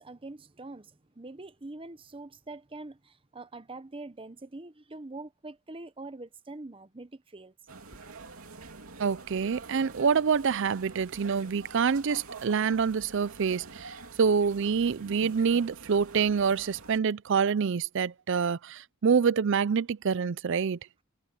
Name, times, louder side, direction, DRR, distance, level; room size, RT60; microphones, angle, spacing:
voice 1, 0.0-7.5, right 2 dB, 25° right, 0.8 m, -44 dB
sound 1, 7.7-17.0, right 3 dB, 75° right, 3.0 m, -47 dB
voice 2, 9.0-20.8, right 6 dB, 55° right, 0.4 m, -26 dB
head